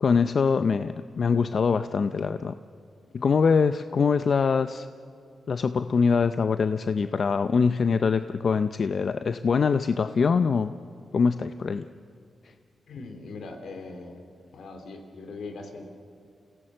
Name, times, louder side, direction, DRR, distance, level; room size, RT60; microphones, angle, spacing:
voice 1, 0.0-2.5 3.1-4.9 5.5-10.7 11.1-11.8, left 5 dB, 55° left, 11 dB, 0.5 m, -23 dB
voice 2, 12.9-14.2 14.5-15.9, left 3 dB, 80° left, 5 dB, 3.0 m, -40 dB
28.0 x 17.0 x 7.5 m, 2.3 s
cardioid pair, 95°, 0 cm